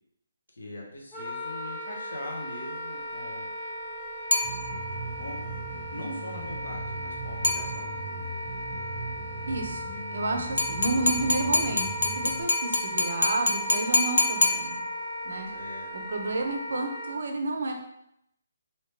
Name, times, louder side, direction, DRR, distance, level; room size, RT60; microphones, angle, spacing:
voice 1, 0.5-3.5 5.2-5.4 5.9-7.9 15.5-15.9, left 1 dB, 90° left, 0 dB, 1.1 m, -41 dB
Wind instrument woodwind instrument, 1.1-17.2, equal, 10° left, 0.5 m, -37 dB
sound 1, 4.3-5.1 7.4-8.2 10.6-15.2, left 2 dB, 65° left, 0.5 m, -27 dB
sound 2, 4.4-12.4, right 2 dB, 40° left, 1.4 m, -39 dB
voice 2, 9.5-11.8 12.1-14.8 15.2-15.5 16.1-17.7, right 2 dB, 60° right, 3 dB, 0.6 m, -30 dB
3.1 x 2.9 x 3.2 m, 0.76 s
hypercardioid pair, 175°, 0 cm